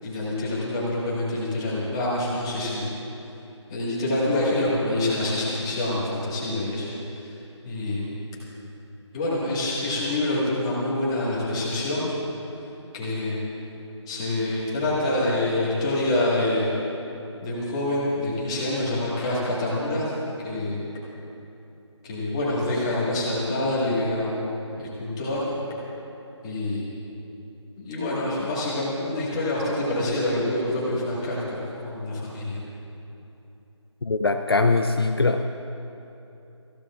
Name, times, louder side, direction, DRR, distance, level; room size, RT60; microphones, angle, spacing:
voice 1, 0.0-2.8 3.7-7.2 7.6-8.2 9.1-12.1 12.9-13.4 14.1-16.8 17.4-20.1 20.4-20.8 22.0-25.4 26.4-26.8 27.8-32.6, left 1 dB, 10° left, -7 dB, 1.7 m, -26 dB
voice 2, 34.0-35.5, left 3 dB, 50° left, 5 dB, 0.5 m, -22 dB
25.0 x 15.5 x 2.4 m, 2.9 s
figure-of-eight pair, 175°, 16 cm